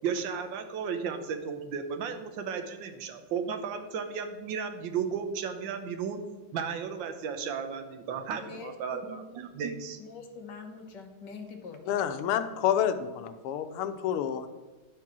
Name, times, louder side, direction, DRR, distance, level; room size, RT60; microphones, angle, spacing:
voice 1, 0.0-6.2 6.5-10.0, right 6 dB, 65° right, 7 dB, 1.5 m, -34 dB
voice 2, 8.3-9.0 10.0-11.8, left 4 dB, 60° left, 4 dB, 1.5 m, -44 dB
voice 3, 11.9-14.5, left 9 dB, 85° left, 10 dB, 1.6 m, -29 dB
10.5 x 4.8 x 6.0 m, 1.2 s
omnidirectional pair, 2.4 m